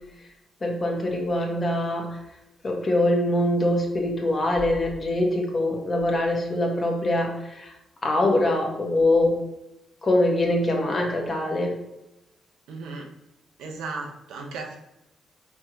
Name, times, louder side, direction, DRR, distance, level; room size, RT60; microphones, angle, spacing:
voice 1, 0.6-2.2 2.6-7.7 8.0-9.4 10.0-11.7, left 1 dB, 45° left, 0 dB, 1.3 m, -23 dB
voice 2, 12.7-13.1 13.6-14.8, right 3 dB, 75° right, 1 dB, 0.7 m, -35 dB
4.7 x 3.5 x 3.0 m, 0.91 s
hypercardioid pair, 40°, 0 cm